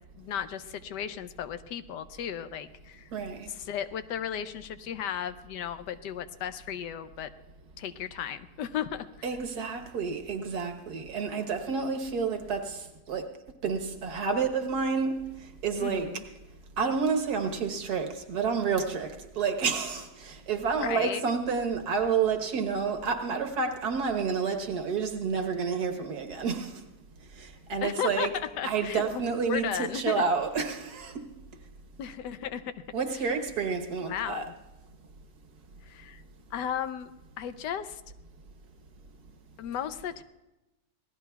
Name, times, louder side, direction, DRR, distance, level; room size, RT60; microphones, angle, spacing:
voice 1, 0.2-3.1 3.5-7.3 7.8-9.1 15.8-16.2 20.8-21.2 27.8-29.2 29.5-30.2 32.0-32.7 34.0-34.4 35.8-36.2 36.5-37.1 37.4-38.0 39.6-40.2, left 9 dB, 85° left, 1.3 m, -35 dB
voice 2, 3.1-3.5 9.2-13.3 13.6-16.2 16.8-26.8 27.4-31.2 32.9-34.5, right 5 dB, 70° right, 1.7 m, -30 dB
26.5 x 18.5 x 2.3 m
omnidirectional pair, 1.8 m